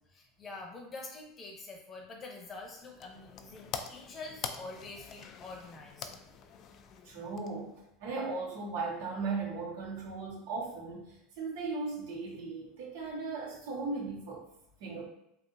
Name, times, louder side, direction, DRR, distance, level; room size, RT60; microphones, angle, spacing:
voice 1, 0.1-6.2, left 3 dB, 25° left, 1 dB, 0.8 m, -46 dB
sound 1, 2.5-7.9, left 7 dB, 40° left, 0.3 m, -45 dB
voice 2, 7.0-14.4 14.8-15.1, right 4 dB, 70° right, -5 dB, 1.5 m, -37 dB
3.5 x 2.6 x 2.6 m, 0.80 s
supercardioid pair, 130°, 0 cm